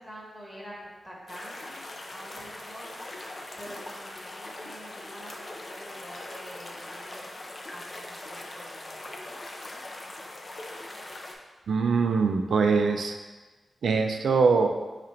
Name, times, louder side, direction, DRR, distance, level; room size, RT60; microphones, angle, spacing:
voice 1, 0.0-7.3 7.7-9.2, equal, 10° left, -5 dB, 1.1 m, -46 dB
sound 1, 1.3-11.4, left 1 dB, 35° left, 0.4 m, -41 dB
voice 2, 11.7-13.1 13.8-14.7, right 4 dB, 85° right, 5 dB, 0.4 m, -23 dB
5.0 x 2.5 x 4.3 m, 1.2 s
wide cardioid pair, 180°, 0 cm